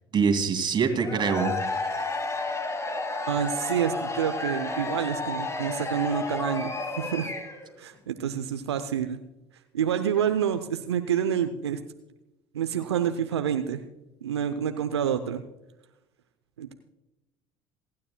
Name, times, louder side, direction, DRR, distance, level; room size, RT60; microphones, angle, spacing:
voice 1, 0.1-1.6, right 5 dB, 35° right, 5 dB, 2.4 m, -24 dB
Cheering / Crowd, 1.0-7.7, left 2 dB, 20° left, 2.2 m, -31 dB
voice 2, 3.3-7.3 7.8-9.2 9.7-11.8 12.5-13.8 14.2-15.4 16.6-16.7, right 8 dB, 85° right, 8 dB, 0.6 m, -28 dB
27.5 x 9.7 x 2.2 m, 0.97 s
hypercardioid pair, 65°, 14 cm